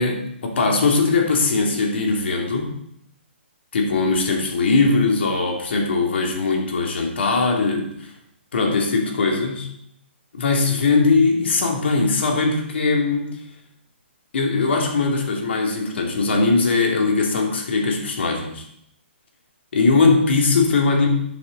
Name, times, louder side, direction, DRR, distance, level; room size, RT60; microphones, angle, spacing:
voice 1, 0.0-2.7 3.7-8.1 8.5-9.7 10.3-13.3 14.3-18.7 19.7-21.1, left 3 dB, 65° left, 0 dB, 3.1 m, -20 dB
11.5 x 7.4 x 4.1 m, 0.75 s
hypercardioid pair, 150°, 7 cm